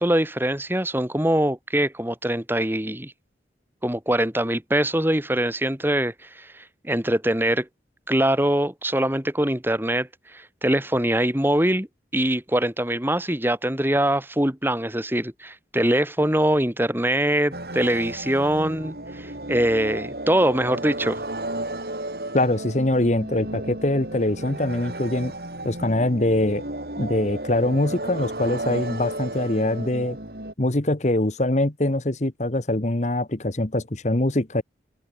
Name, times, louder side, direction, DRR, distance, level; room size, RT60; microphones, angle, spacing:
voice 1, 0.0-3.1 3.8-7.7 8.1-11.9 12.1-21.2, right 1 dB, 10° right, 2.4 m, -23 dB
sound 1, 17.5-30.5, right 1 dB, 60° right, 5.6 m, -33 dB
voice 2, 22.3-25.3 25.6-26.6 27.0-30.2 30.6-34.6, left 1 dB, 40° left, 1.3 m, -23 dB
open air
head